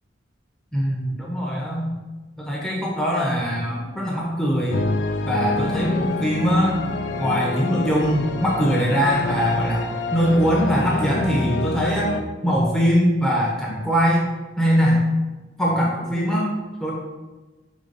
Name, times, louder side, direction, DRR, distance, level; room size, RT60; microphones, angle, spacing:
voice 1, 0.7-1.9 2.4-4.8 5.2-6.8 7.2-14.3 14.6-15.0 15.6-16.5 16.8-16.9, equal, ahead, -4 dB, 0.8 m, -22 dB
sound 1, 4.7-12.2, left 2 dB, 60° left, 0.4 m, -27 dB
5.3 x 3.5 x 5.1 m, 1.2 s
head